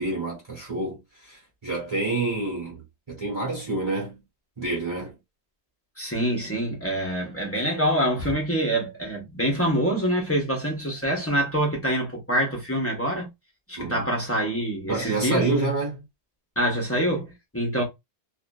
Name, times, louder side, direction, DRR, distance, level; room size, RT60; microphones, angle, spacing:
voice 1, 0.0-4.2 4.6-5.2 13.8-14.1 14.9-16.0, right 2 dB, 25° right, 1.2 m, -28 dB
voice 2, 6.0-13.3 13.7-15.5 16.6-17.8, right 1 dB, 15° left, 0.7 m, -25 dB
2.5 x 2.4 x 2.2 m
omnidirectional pair, 1.2 m